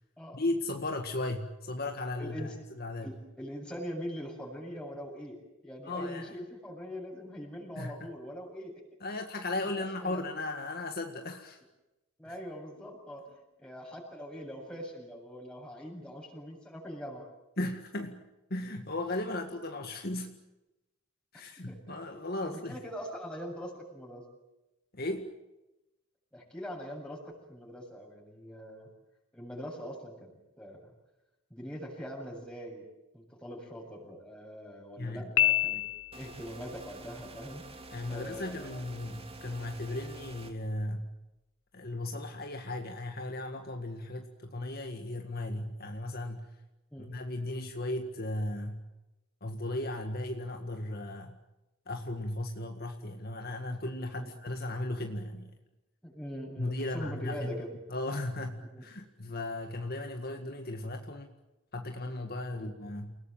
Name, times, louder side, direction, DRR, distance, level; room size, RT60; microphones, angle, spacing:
voice 1, 0.3-3.2 5.8-6.3 7.8-7.9 9.0-11.6 12.3-12.4 17.6-18.2 18.5-20.4 21.3-22.8 24.9-25.3 35.0-35.3 37.9-41.1 41.7-46.6 47.0-48.8 49.4-51.4 51.9-55.5 56.6-57.5 57.9-61.3 61.7-63.2, left 2 dB, 45° left, 5 dB, 1.9 m, -36 dB
voice 2, 2.2-2.5 3.0-5.4 5.6-8.8 9.8-10.2 12.2-17.3 21.7-21.8 22.1-24.2 26.3-27.2 27.5-28.9 29.3-30.3 30.6-30.9 31.5-32.8 33.1-35.8 36.1-37.6 38.1-38.8 46.9-47.1 54.2-54.3 56.0-57.7 58.6-58.8 62.5-62.7, equal, 5° left, -1 dB, 7.7 m, -42 dB
Piano, 35.4-36.5, left 13 dB, 75° left, 0.8 m, -27 dB
sound 1, 36.1-40.5, right 2 dB, 25° right, 3.0 m, -48 dB
29.5 x 19.0 x 9.0 m, 0.97 s
head